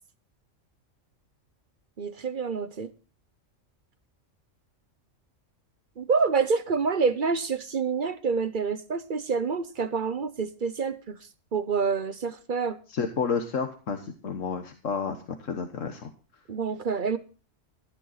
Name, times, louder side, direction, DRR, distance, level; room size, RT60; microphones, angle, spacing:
voice 1, 2.0-2.9 6.0-11.2 11.5-12.8 16.5-17.2, right 5 dB, 45° right, 0.9 m, -27 dB
voice 2, 12.9-16.1, left 5 dB, 75° left, 1.5 m, -31 dB
15.0 x 10.5 x 4.0 m
omnidirectional pair, 1.3 m